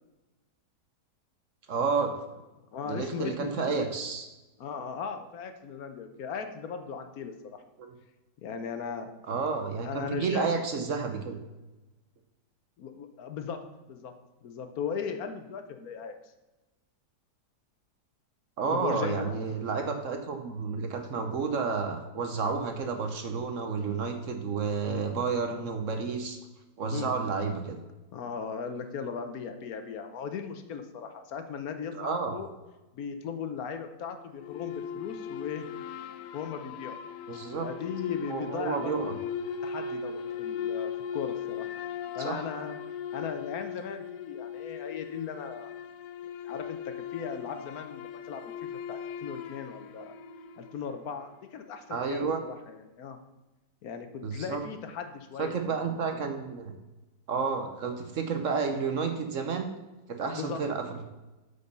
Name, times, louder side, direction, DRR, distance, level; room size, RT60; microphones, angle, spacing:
voice 1, 1.7-2.1 2.9-4.3 7.8-7.9 9.3-11.4 18.6-26.4 26.8-27.8 31.9-32.4 37.3-37.7 38.3-39.1 42.2-42.5 51.9-52.4 54.2-54.6 55.4-56.7 57.3-59.7 60.1-61.0, right 5 dB, 55° right, 6 dB, 1.1 m, -31 dB
voice 2, 2.7-3.8 4.6-7.6 8.4-9.2 9.8-10.6 12.8-14.1 14.4-16.1 18.7-19.4 24.8-25.1 26.9-27.1 28.1-32.5 32.9-35.7 36.3-37.0 37.6-39.3 39.6-41.7 42.1-42.8 43.1-45.8 46.4-50.2 50.6-53.2 53.8-56.1 60.4-60.6, left 6 dB, 65° left, 7 dB, 1.2 m, -38 dB
sound 1, 34.4-51.0, left 7 dB, 90° left, 1.2 m, -38 dB
8.3 x 5.4 x 5.4 m, 1.1 s
omnidirectional pair, 1.7 m